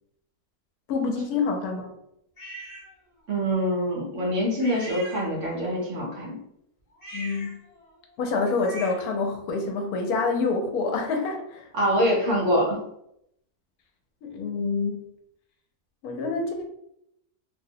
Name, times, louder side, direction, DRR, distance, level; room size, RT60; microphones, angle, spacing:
voice 1, 0.9-1.9 7.1-7.6 8.2-11.7 14.2-15.0 16.0-16.6, left 4 dB, 85° left, 3 dB, 1.1 m, -27 dB
sound 1, 2.4-2.9 4.6-5.7 6.9-9.2, right 1 dB, 35° left, 0.7 m, -41 dB
voice 2, 3.3-6.4 11.7-12.8, equal, 60° right, -4 dB, 1.1 m, -25 dB
2.9 x 2.0 x 2.7 m, 0.76 s
omnidirectional pair, 1.6 m